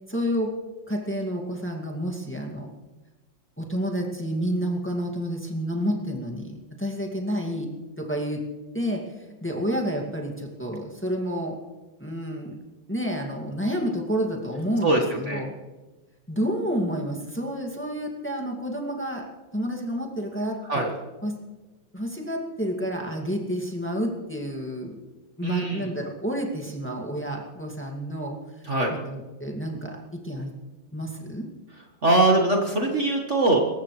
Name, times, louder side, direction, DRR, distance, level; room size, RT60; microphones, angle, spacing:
voice 1, 0.1-0.5 0.9-2.7 3.6-7.7 8.0-8.4 8.7-11.6 12.0-12.6 12.9-15.6 16.3-19.3 19.5-20.8 21.2-21.4 21.9-25.0 25.4-28.4 29.1-30.5 30.9-31.5, equal, 5° left, 0 dB, 2.1 m, -29 dB
voice 2, 25.4-25.8 28.7-28.9 32.0-33.6, right 2 dB, 40° right, 1 dB, 1.8 m, -22 dB
26.0 x 14.5 x 3.3 m, 1.2 s
omnidirectional pair, 2.1 m